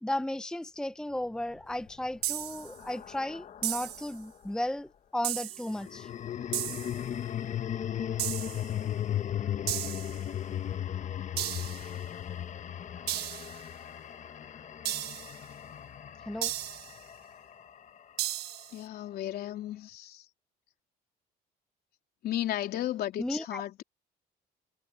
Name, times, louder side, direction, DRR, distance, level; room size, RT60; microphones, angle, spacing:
voice 1, 0.0-6.1 16.3-16.5 23.2-23.6, left 1 dB, 5° left, 0.7 m, -34 dB
sound 1, 1.6-4.1 5.7-18.0, left 10 dB, 45° left, 1.2 m, -37 dB
sound 2, 2.2-2.7 3.6-4.1 5.2-5.7 6.5-7.0 8.2-8.7 9.7-10.2 11.4-11.9 13.1-13.6 14.8-15.4 16.4-17.0 18.2-18.8, right 14 dB, 75° right, 1.5 m, -34 dB
voice 2, 18.7-20.3 22.2-23.8, left 12 dB, 70° left, 3.6 m, -34 dB
cardioid pair, 110°, 17 cm